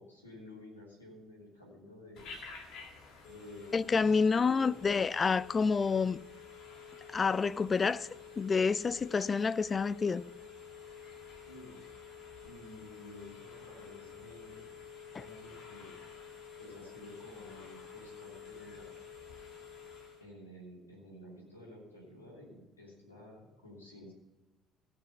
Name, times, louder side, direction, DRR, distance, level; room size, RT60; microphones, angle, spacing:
voice 1, 0.0-2.3 3.2-4.8 11.4-11.8 12.4-14.6 15.2-16.0 16.6-18.9 20.2-24.1, left 1 dB, 90° left, 2.9 m, -52 dB
Telephone, 2.2-20.3, left 6 dB, 60° left, 2.1 m, -50 dB
voice 2, 3.7-6.2 7.1-8.1 8.4-10.2, left 5 dB, 30° left, 0.3 m, -28 dB
16.5 x 6.0 x 5.6 m
figure-of-eight pair, 55°, 0 cm